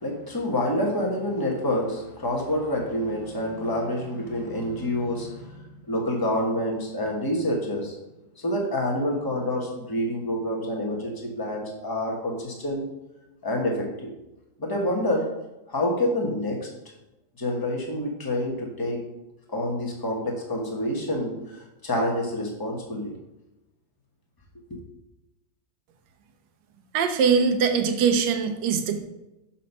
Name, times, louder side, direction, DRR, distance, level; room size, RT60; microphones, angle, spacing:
voice 1, 0.0-7.9 8.4-12.8 13.4-14.1 14.6-15.3 15.7-16.7 17.4-19.0 19.5-23.1 24.7-24.8, left 1 dB, 15° left, -1 dB, 1.0 m, -27 dB
voice 2, 26.9-29.0, right 6 dB, 75° right, 6 dB, 1.4 m, -22 dB
6.2 x 4.3 x 5.3 m, 0.97 s
omnidirectional pair, 1.9 m